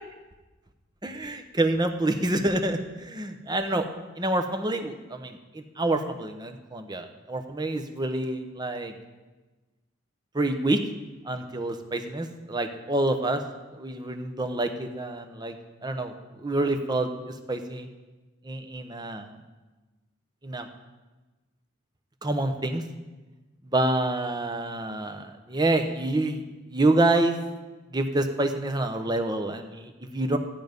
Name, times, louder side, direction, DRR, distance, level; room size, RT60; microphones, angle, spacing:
voice 1, 1.0-3.9 4.2-8.9 10.3-10.8 11.2-13.4 13.7-15.5 15.8-17.1 17.5-17.9 18.4-19.4 20.4-20.7 22.2-22.8 23.7-26.4 26.7-27.5 27.9-30.4, right 2 dB, 20° right, 6 dB, 0.9 m, -27 dB
14.5 x 9.5 x 5.2 m, 1.2 s
head